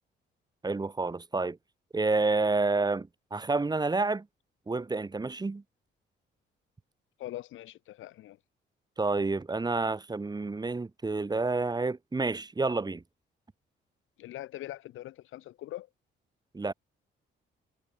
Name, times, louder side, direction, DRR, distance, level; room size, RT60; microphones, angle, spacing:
voice 1, 0.6-1.6 1.9-4.2 4.7-5.6 9.0-13.0 16.5-16.7, right 3 dB, 20° right, 1.3 m, -29 dB
voice 2, 7.2-8.4 14.2-15.9, left 14 dB, 85° left, 2.1 m, -42 dB
cardioid pair, 90°, 20 cm